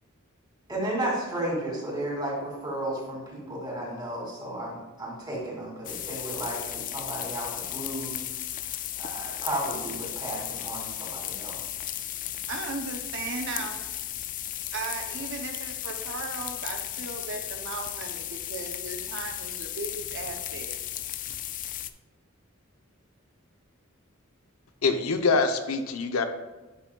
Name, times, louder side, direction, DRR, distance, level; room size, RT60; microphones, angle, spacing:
voice 1, 0.7-8.1 9.0-11.6, right 1 dB, 20° right, -3 dB, 2.4 m, -33 dB
sound 1, 5.8-21.9, left 12 dB, 40° left, 0.3 m, -35 dB
voice 2, 12.5-14.0 14.7-20.8, right 4 dB, 65° right, 4 dB, 0.7 m, -37 dB
voice 3, 24.8-26.2, left 4 dB, 90° left, 7 dB, 0.7 m, -24 dB
10.0 x 6.1 x 2.3 m, 1.2 s
head